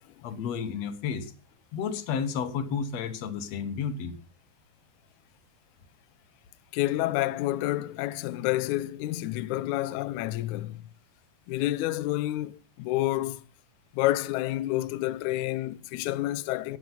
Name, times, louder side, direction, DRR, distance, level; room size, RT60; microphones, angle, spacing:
voice 1, 0.2-1.3 1.7-4.1, left 6 dB, 60° left, 2.0 m, -31 dB
voice 2, 6.7-10.8 11.5-13.4 13.9-16.8, left 16 dB, 80° left, 1.7 m, -29 dB
13.5 x 9.4 x 5.6 m
omnidirectional pair, 4.2 m